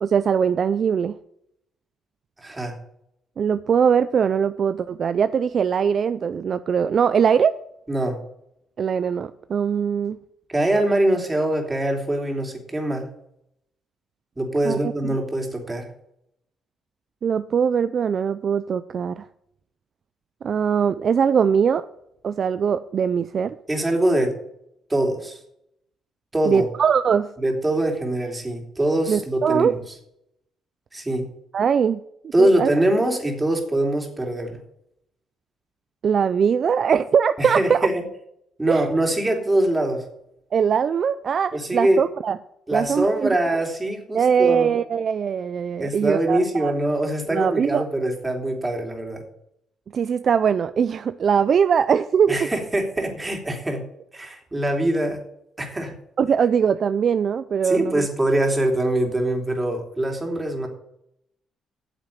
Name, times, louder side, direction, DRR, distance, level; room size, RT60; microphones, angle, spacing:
voice 1, 0.0-1.2 3.4-7.6 8.8-10.2 14.6-14.9 17.2-19.3 20.4-21.9 22.2-23.6 26.5-27.3 29.1-29.7 31.5-32.7 36.0-37.8 38.7-38.9 40.5-42.4 42.7-43.3 44.1-46.7 47.3-47.8 49.9-52.5 56.2-58.1, right 7 dB, 55° right, 0.4 m, -21 dB
voice 2, 2.4-2.8 7.9-8.2 10.5-13.0 14.4-15.9 23.7-24.4 24.9-25.4 26.3-26.7 27.4-29.8 30.9-31.3 32.3-34.6 37.4-38.0 38.6-40.1 41.5-42.0 42.7-44.7 45.8-49.2 52.3-53.8 54.1-55.2 55.6-55.9 57.6-60.7, right 1 dB, 15° right, 3.1 m, -23 dB
9.1 x 7.5 x 8.5 m
cardioid pair, 90°, 0 cm